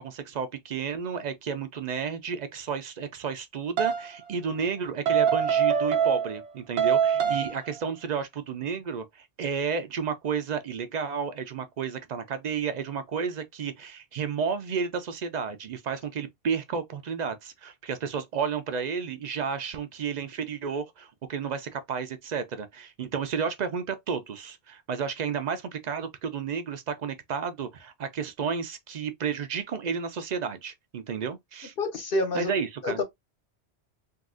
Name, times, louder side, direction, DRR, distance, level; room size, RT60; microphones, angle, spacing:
voice 1, 0.0-31.7 32.3-33.0, right 6 dB, 60° right, 0.5 m, -32 dB
sound 1, 3.8-4.1 5.1-6.5 6.8-7.7, right 7 dB, 85° right, 0.9 m, -24 dB
voice 2, 31.8-32.5 32.8-33.0, left 2 dB, 55° left, 1.1 m, -28 dB
3.7 x 2.3 x 2.4 m
omnidirectional pair, 1.1 m